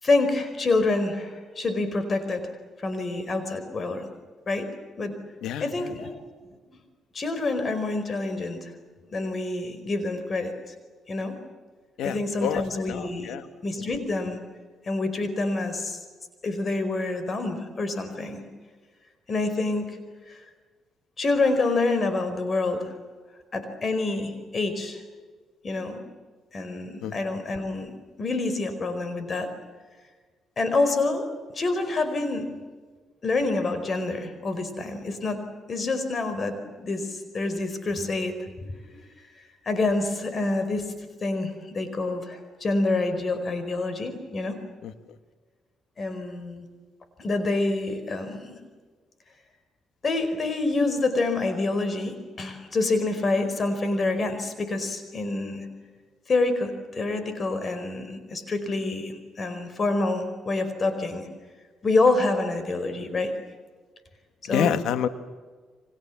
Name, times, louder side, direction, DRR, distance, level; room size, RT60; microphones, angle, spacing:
voice 1, 0.0-4.0 4.5-4.7 5.0-5.2 5.6-6.2 7.1-8.7 9.1-10.5 11.1-11.4 12.0-13.4 13.6-14.4 14.8-16.0 16.4-18.4 19.3-20.0 20.3-20.4 21.2-23.0 23.5-25.0 25.6-26.0 26.5-27.9 28.2-29.5 30.6-31.3 31.5-32.5 33.2-35.4 35.7-38.3 38.6-38.8 39.6-40.9 41.2-44.6 46.0-46.6 47.2-48.5 50.0-55.7 56.3-61.3 61.8-63.3 64.4-64.7, left 3 dB, 40° left, 9 dB, 4.8 m, -27 dB
voice 2, 12.0-13.4 27.0-27.1 44.8-44.9 64.5-65.1, left 9 dB, 80° left, 10 dB, 1.6 m, -27 dB
29.5 x 24.5 x 7.4 m, 1.4 s
cardioid pair, 90°, 0 cm